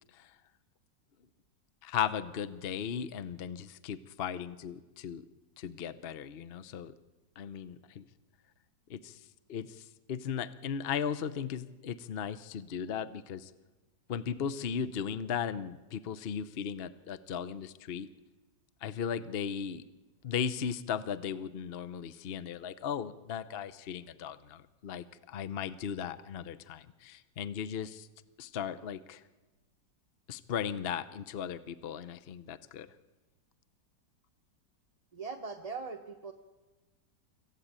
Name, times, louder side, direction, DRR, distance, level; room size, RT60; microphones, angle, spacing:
voice 1, 1.8-5.2 5.6-6.9 7.4-8.1 8.9-13.5 14.1-18.1 18.8-19.8 20.2-28.1 28.4-29.2 30.3-32.9, left 8 dB, 50° left, 14 dB, 0.7 m, -37 dB
voice 2, 35.1-36.3, right 4 dB, 25° right, 3 dB, 0.9 m, -40 dB
25.0 x 15.5 x 8.9 m, 1.2 s
omnidirectional pair, 2.0 m